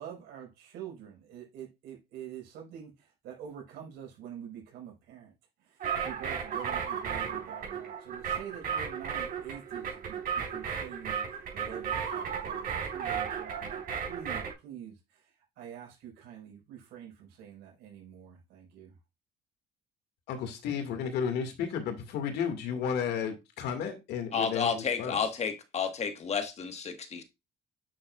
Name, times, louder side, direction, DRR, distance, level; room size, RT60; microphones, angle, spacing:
voice 1, 0.0-5.3 5.6-13.8 14.1-18.9, right 9 dB, 85° right, 4.6 m, -46 dB
sound 1, 5.8-14.5, right 7 dB, 60° right, 4.0 m, -34 dB
voice 2, 20.3-25.2, left 7 dB, 80° left, 2.0 m, -33 dB
voice 3, 24.3-27.2, left 6 dB, 40° left, 1.4 m, -31 dB
8.7 x 6.5 x 2.4 m
cardioid pair, 110°, 17 cm